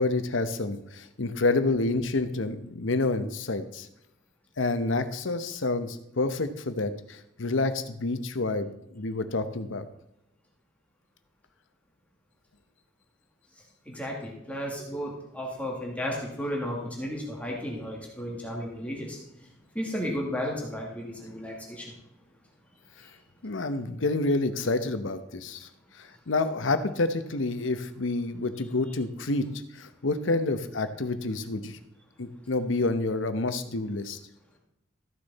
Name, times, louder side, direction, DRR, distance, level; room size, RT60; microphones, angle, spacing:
voice 1, 0.0-3.9 4.6-9.8 23.4-25.7 26.0-29.5 29.7-31.8 32.2-34.2, left 2 dB, 80° left, 10 dB, 0.9 m, -28 dB
voice 2, 13.9-19.2 19.7-21.9, equal, 5° left, -2 dB, 2.1 m, -33 dB
13.5 x 6.6 x 4.1 m, 0.83 s
head